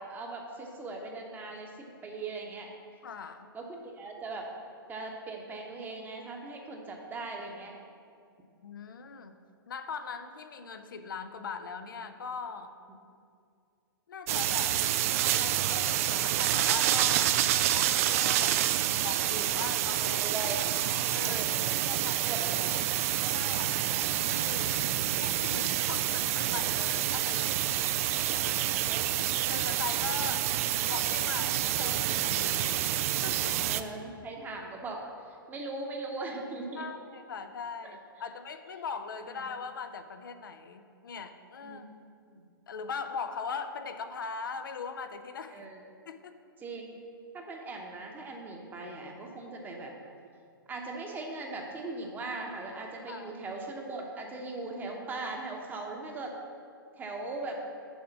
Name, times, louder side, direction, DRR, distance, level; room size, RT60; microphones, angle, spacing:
voice 1, 0.0-1.7 2.0-2.7 3.5-4.5 4.9-7.7 20.0-20.7 21.3-21.6 22.1-22.9 28.3-29.2 33.7-35.0 35.3-36.9 41.6-41.8 42.3-42.4 45.5-45.8 46.6-47.0 47.3-49.9 50.7-56.3 57.0-57.6, right 3 dB, 15° right, 1 dB, 1.0 m, -39 dB
voice 2, 3.0-3.5 8.6-9.4 9.7-12.7 14.1-14.8 15.2-18.6 19.0-20.2 20.8-22.3 23.3-24.8 25.1-27.9 28.4-28.8 29.5-30.5 30.9-33.6 36.8-41.8 42.7-45.7 46.1-46.4 53.1-53.4, left 5 dB, 65° left, 8 dB, 0.5 m, -40 dB
sound 1, 14.3-33.8, right 12 dB, 40° right, 0.3 m, -28 dB
7.1 x 4.8 x 7.1 m, 2.4 s
figure-of-eight pair, 110°, 12 cm